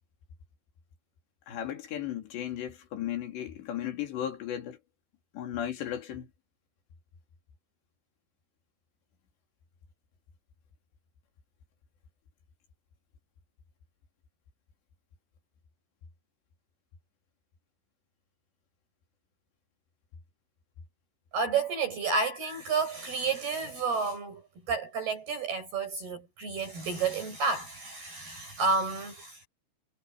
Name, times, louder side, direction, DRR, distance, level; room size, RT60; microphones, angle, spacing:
voice 1, 1.5-4.8 5.3-6.3, left 10 dB, 60° left, 5.1 m, -35 dB
voice 2, 21.3-24.4 24.7-29.5, right 4 dB, 50° right, 9.2 m, -30 dB
omnidirectional pair, 5.8 m